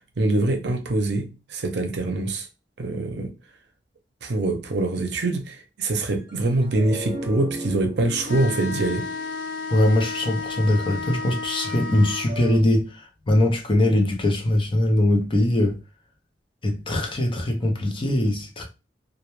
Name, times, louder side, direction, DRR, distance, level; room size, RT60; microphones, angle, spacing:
voice 1, 0.2-2.5 2.8-3.3 4.2-9.0, right 2 dB, 65° right, 0.5 m, -24 dB
sound 1, 6.2-10.5 11.4-12.6, right 1 dB, 25° right, 0.8 m, -38 dB
sound 2, 8.2-12.3, left 4 dB, 80° left, 0.4 m, -32 dB
voice 2, 9.7-15.8 16.6-18.7, left 1 dB, 30° left, 0.5 m, -21 dB
2.2 x 2.1 x 2.9 m
head